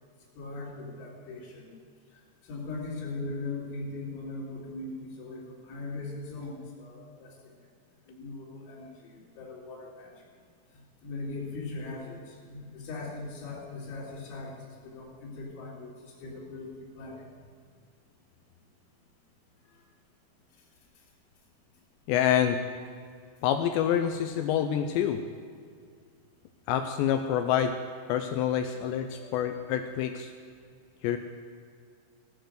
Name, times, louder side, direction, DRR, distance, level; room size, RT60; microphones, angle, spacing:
voice 1, 0.4-1.7 2.5-7.3 8.1-10.1 10.7-14.6 14.8-17.2 29.1-29.6, left 3 dB, 70° left, -8 dB, 4.8 m, -40 dB
voice 2, 22.1-22.6 23.4-25.2 26.7-27.7 28.1-30.3 31.0-31.2, left 9 dB, 90° left, 7 dB, 2.5 m, -27 dB
19.0 x 6.7 x 7.8 m, 2.2 s
omnidirectional pair, 5.7 m